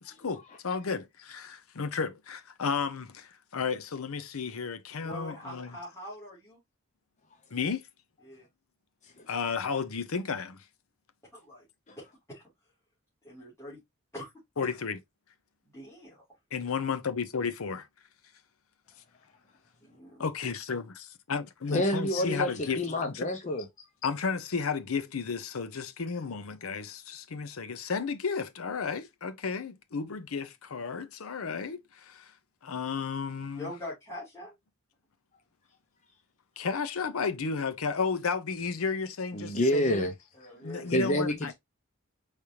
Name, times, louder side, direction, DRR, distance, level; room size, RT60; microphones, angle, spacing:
voice 1, 0.0-5.8 7.5-7.9 9.3-10.6 14.6-15.0 16.5-17.9 20.2-23.3 24.0-32.3 32.6-33.7 36.6-40.0 40.6-41.5, left 5 dB, 90° left, 0.7 m, -33 dB
voice 2, 5.0-6.6 8.2-8.5 11.3-11.7 12.0-12.4 13.2-13.8 14.1-14.3 15.7-16.1 20.0-20.2 33.5-34.5 40.3-41.1, left 1 dB, 15° left, 2.5 m, -43 dB
voice 3, 21.7-23.7 39.3-40.1 40.9-41.5, left 1 dB, 35° left, 0.7 m, -28 dB
5.0 x 3.3 x 2.8 m
head